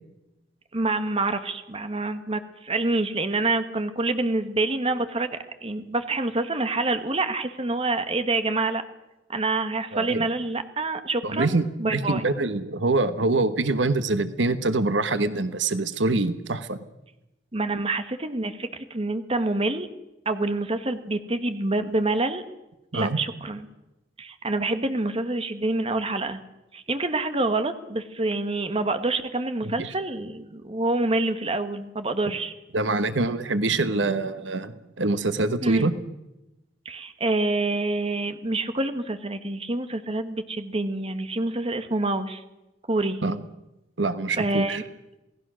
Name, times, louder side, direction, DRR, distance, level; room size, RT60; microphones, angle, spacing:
voice 1, 0.7-8.8 9.3-12.2 17.5-19.9 20.2-22.4 22.9-23.7 24.2-26.4 26.7-32.5 35.6-35.9 36.8-42.4 42.9-43.2 44.3-44.8, right 2 dB, 35° right, 9 dB, 1.5 m, -27 dB
voice 2, 9.9-10.2 11.2-16.8 22.9-23.2 29.6-29.9 32.3-32.4 32.7-35.9 43.2-43.4 44.0-44.8, right 2 dB, 85° right, 11 dB, 1.3 m, -25 dB
28.0 x 18.0 x 6.4 m, 0.95 s
head